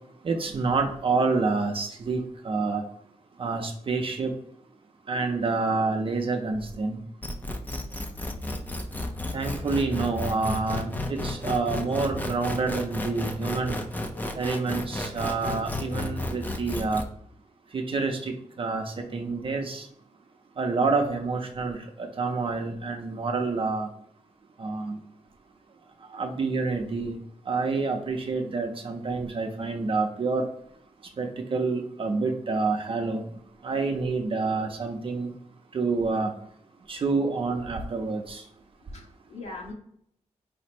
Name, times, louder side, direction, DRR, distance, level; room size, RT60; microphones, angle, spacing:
voice 1, 0.2-2.8 3.4-4.3 5.1-7.0 9.3-13.8 14.3-17.1 17.7-19.9 20.6-23.9 24.6-25.0 26.1-27.2 27.5-30.5 31.2-33.3 33.6-35.3 35.7-36.3 36.9-38.4, right 3 dB, 45° right, 3 dB, 0.6 m, -28 dB
sound 1, 7.2-17.0, left 1 dB, 15° left, 0.5 m, -32 dB
voice 2, 38.9-39.7, left 3 dB, 65° left, -1 dB, 1.3 m, -43 dB
5.0 x 2.1 x 4.2 m, 0.69 s
wide cardioid pair, 170°, 12 cm